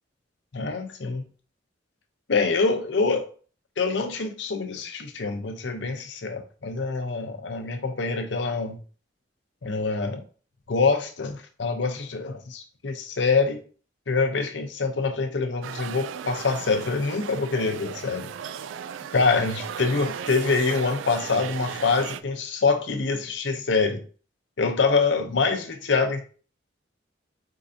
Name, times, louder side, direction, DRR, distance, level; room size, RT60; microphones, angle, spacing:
voice 1, 0.5-1.3 2.3-3.3 3.8-8.8 9.6-10.2 10.7-13.6 14.1-18.3 19.1-24.0 24.6-26.2, left 4 dB, 70° left, 6 dB, 0.7 m, -25 dB
sound 1, 15.6-22.2, right 8 dB, 85° right, 0.3 m, -36 dB
4.6 x 3.7 x 2.7 m, 0.40 s
head